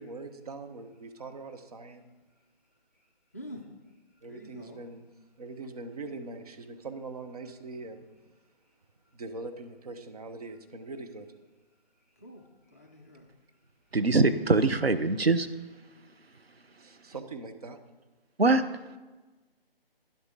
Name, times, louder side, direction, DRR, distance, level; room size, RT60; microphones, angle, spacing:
voice 1, 0.0-2.1 4.2-5.0 5.4-8.1 9.1-11.3 16.8-17.8, right 3 dB, 40° right, 0.9 m, -42 dB
voice 2, 3.3-3.7 4.2-4.8 12.2-13.3, equal, 15° left, 0.5 m, -46 dB
voice 3, 13.9-15.5 18.4-18.6, right 3 dB, 80° right, 0.8 m, -23 dB
11.5 x 11.0 x 3.8 m
figure-of-eight pair, 145°, 30 cm